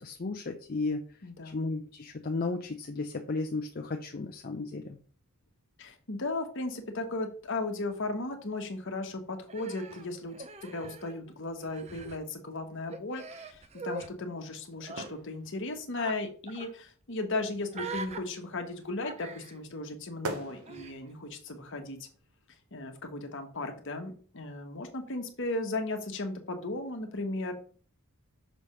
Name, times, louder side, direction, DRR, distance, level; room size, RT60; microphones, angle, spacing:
voice 1, 0.0-1.0 1.5-5.0, left 3 dB, 40° left, 3 dB, 0.5 m, -34 dB
voice 2, 1.2-1.6 5.8-10.4 10.6-22.1 22.7-27.5, left 2 dB, 55° left, 5 dB, 1.2 m, -36 dB
sound 1, 4.7-5.2 6.1-6.6 6.9-8.1 8.6-8.7 9.0-12.1 12.8-13.5 13.8-13.9 14.2-14.4 15.0-19.9 20.2-22.8 23.1-23.2, right 2 dB, 80° right, 1.0 m, -47 dB
Human voice, 9.5-11.3 11.6-12.2 12.9-14.1 14.8-15.1 15.9-16.2 16.5-16.7 17.7-18.2 19.0-19.6 20.7-20.9, right 4 dB, 30° right, 0.6 m, -42 dB
6.2 x 3.4 x 5.5 m, 0.43 s
head